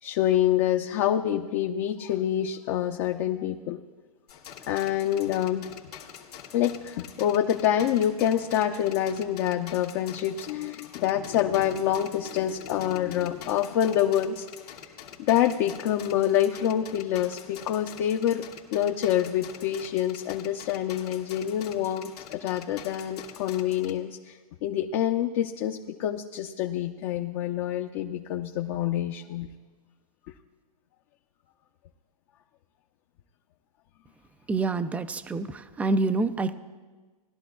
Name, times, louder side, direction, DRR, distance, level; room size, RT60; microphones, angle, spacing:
voice 1, 0.0-3.8 4.7-5.6 6.5-14.8 15.2-18.4 18.7-29.5, left 11 dB, 45° left, 3 dB, 0.6 m, -26 dB
sound 1, 4.3-23.9, left 8 dB, 85° left, 1.8 m, -46 dB
voice 2, 34.5-36.6, right 3 dB, 5° right, 12 dB, 0.3 m, -27 dB
19.5 x 12.0 x 2.3 m, 1.3 s
hypercardioid pair, 125°, 19 cm